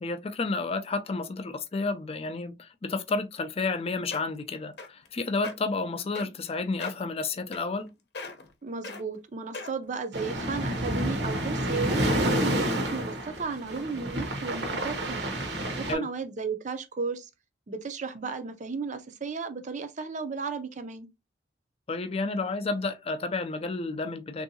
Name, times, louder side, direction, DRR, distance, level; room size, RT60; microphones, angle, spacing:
voice 1, 0.0-7.9 15.9-16.1 21.9-24.4, left 3 dB, 35° left, 0.4 m, -31 dB
sound 1, 3.8-3.9 4.1-4.4 4.8-5.1 5.4-5.5 6.1-6.5 6.8-7.1 7.5-7.9 8.1-8.5 8.8-9.0 9.5-9.9 10.5-10.6, left 3 dB, 65° left, 0.7 m, -39 dB
voice 2, 8.6-15.4 15.8-17.3 17.7-21.1, right 4 dB, 45° right, 0.5 m, -34 dB
sound 2, 10.1-15.9, right 1 dB, 70° right, 0.9 m, -29 dB
3.6 x 2.7 x 2.7 m
head